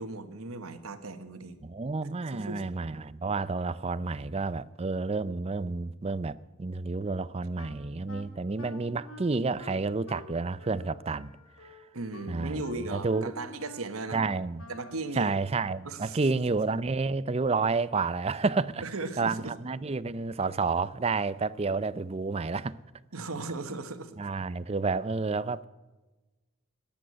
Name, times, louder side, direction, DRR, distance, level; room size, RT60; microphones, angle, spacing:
voice 1, 0.0-1.6 2.3-2.6 11.9-14.2 14.7-15.3 15.8-16.2 18.8-19.6 23.1-24.2, right 3 dB, 90° right, 1.4 m, -37 dB
voice 2, 1.6-11.3 11.6-11.7 12.3-13.4 14.1-14.7 15.2-18.8 19.2-22.8 24.2-25.7, right 4 dB, 30° right, 0.5 m, -30 dB
Wind instrument woodwind instrument, 7.6-15.1, left 2 dB, 80° left, 2.5 m, -48 dB
14.0 x 10.0 x 8.4 m
head